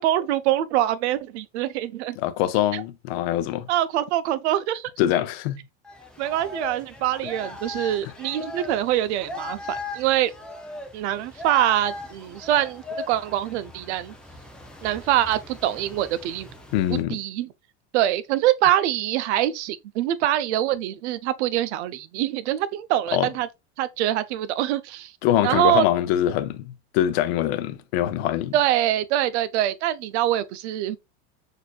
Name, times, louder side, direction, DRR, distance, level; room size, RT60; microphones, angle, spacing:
voice 1, 0.0-2.2 2.7-2.8 3.7-4.9 6.2-10.3 10.9-14.1 14.8-16.5 16.9-17.5 17.9-23.5 23.8-25.0 25.4-25.9 28.5-31.0, right 13 dB, 80° right, 0.6 m, -24 dB
voice 2, 2.2-3.7 5.0-5.6 8.0-8.1 16.7-17.2 23.1-23.3 25.2-28.6, left 12 dB, 65° left, 0.6 m, -24 dB
sound 1, 5.8-17.0, left 3 dB, 5° left, 0.4 m, -39 dB
6.5 x 2.7 x 2.3 m
supercardioid pair, 150°, 34 cm